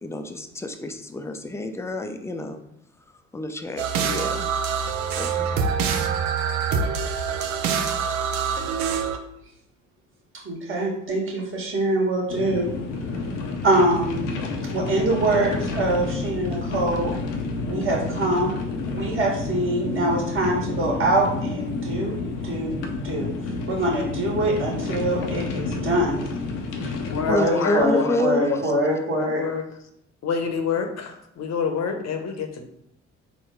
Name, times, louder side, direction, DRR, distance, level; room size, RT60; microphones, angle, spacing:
voice 1, 0.0-2.6 3.3-4.5 5.1-5.6 27.3-28.7, left 2 dB, 10° left, 6 dB, 0.5 m, -28 dB
sound 1, 3.8-9.2, right 6 dB, 65° right, 0.6 m, -25 dB
voice 2, 10.4-12.7 13.6-14.2 14.7-17.2 17.7-18.6 18.9-22.2 22.4-22.7 23.0-23.3 23.7-26.2 26.8-29.4, right 1 dB, 35° right, -3 dB, 1.5 m, -24 dB
sound 2, 12.3-27.3, left 3 dB, 80° left, 0.6 m, -29 dB
voice 3, 27.1-29.6 30.2-32.6, left 6 dB, 45° left, 5 dB, 0.8 m, -28 dB
3.9 x 2.2 x 4.4 m, 0.75 s
hypercardioid pair, 50°, 36 cm